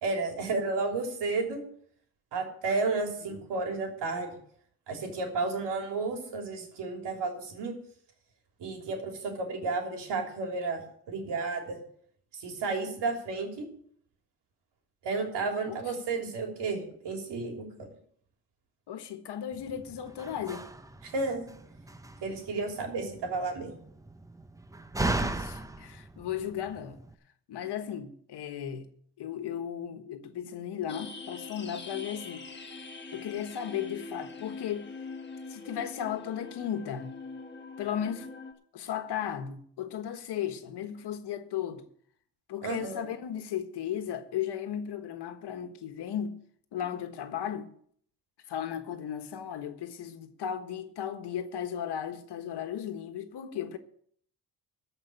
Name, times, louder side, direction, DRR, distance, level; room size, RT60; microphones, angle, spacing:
voice 1, 0.0-1.6 2.3-4.4 4.9-7.7 8.6-10.8 11.1-11.8 12.3-13.7 15.0-17.9 21.0-21.5 22.2-23.7 42.6-43.1, right 3 dB, 90° right, 3.3 m, -32 dB
voice 2, 18.9-20.6 25.2-27.0 27.5-28.9 29.2-32.7 33.1-34.9 35.5-37.1 37.8-38.3 38.7-41.8 42.5-46.4 46.7-47.7 48.5-53.8, left 9 dB, 75° left, 1.5 m, -35 dB
Slam, 19.5-27.1, right 2 dB, 10° right, 0.7 m, -37 dB
sound 1, 30.9-38.5, left 4 dB, 25° left, 1.5 m, -43 dB
14.0 x 5.4 x 8.9 m
cardioid pair, 120°, 40 cm